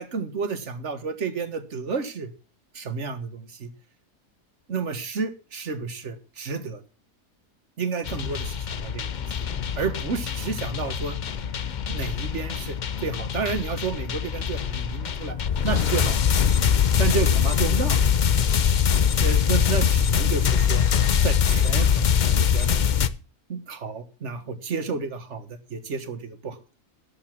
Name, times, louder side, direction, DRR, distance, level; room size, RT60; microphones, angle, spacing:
voice 1, 0.0-2.3 2.7-3.7 4.7-6.8 7.8-9.1 9.8-11.2 11.9-15.4 15.6-16.2 17.0-18.0 19.2-20.8 21.2-22.7 23.5-26.6, right 5 dB, 50° right, 11 dB, 1.6 m, -31 dB
sound 1, 8.0-23.1, left 8 dB, 75° left, 0.4 m, -23 dB
sound 2, 9.1-17.8, left 7 dB, 60° left, 1.6 m, -43 dB
12.0 x 7.1 x 6.0 m, 0.36 s
omnidirectional pair, 1.7 m